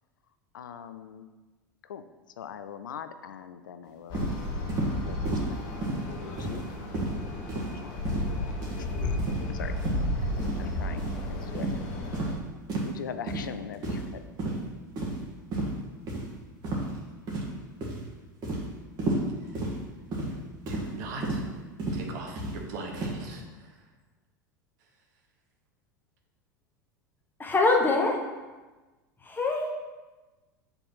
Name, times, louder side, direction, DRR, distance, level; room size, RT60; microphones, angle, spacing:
voice 1, 0.5-1.3 1.8-2.0 2.4-4.2 5.1-6.7 7.7-8.0 8.8-9.2 9.5-9.7 10.2-11.8 12.9-14.3, left 8 dB, 75° left, 10 dB, 0.4 m, -42 dB
sound 1, 4.1-12.4, left 1 dB, 55° left, 1.0 m, -33 dB
sound 2, 4.1-4.3 4.7-4.9 5.2-5.5 5.8-6.0 6.4-6.7 6.9-7.1 7.5-7.7 8.0-8.3 8.6-8.8 9.2-9.4 9.8-10.0 10.4-10.6 11.0-11.1 11.5-11.8 12.1-12.3 12.7-12.9 13.3-13.5 13.8-14.1 14.4-14.6 15.0-15.2 15.5-15.7 16.1-16.2 16.6-16.9 17.3-17.6 17.8-18.0 18.4-18.6 19.0-19.2 19.5-19.7 20.1-20.3 20.7-20.9 21.2-21.4 21.8-22.0 22.3-22.5 22.9-23.2, right 2 dB, 40° right, 1.8 m, -31 dB
voice 2, 20.7-21.4 21.9-23.7, right 3 dB, 60° right, 2 dB, 1.2 m, -40 dB
voice 3, 27.4-28.2 29.2-29.7, left 3 dB, 20° left, 1 dB, 1.2 m, -24 dB
5.3 x 4.1 x 5.7 m, 1.2 s
figure-of-eight pair, 80°, 11 cm